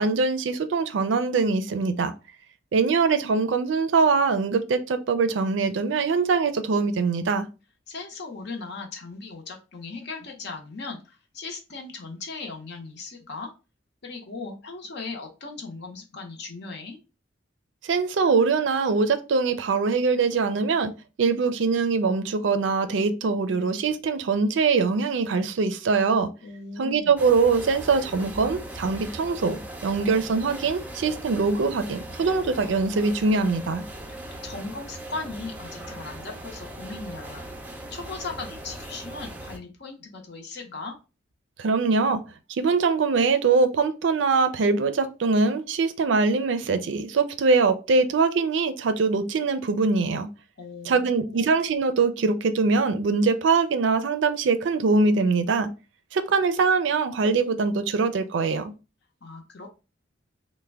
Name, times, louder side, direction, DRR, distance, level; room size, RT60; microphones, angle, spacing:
voice 1, 0.0-2.1 2.7-7.5 17.8-20.9 21.2-26.3 26.8-33.8 41.6-42.2 42.5-50.3 50.8-55.7 56.1-58.7, right 4 dB, 70° right, 0.4 m, -23 dB
voice 2, 7.9-13.5 14.0-17.0 26.4-27.1 34.1-37.4 37.9-41.0 50.6-51.5 59.2-59.7, left 3 dB, 60° left, 0.8 m, -38 dB
sound 1, 27.2-39.6, right 1 dB, 10° right, 0.4 m, -39 dB
3.3 x 2.1 x 3.3 m
head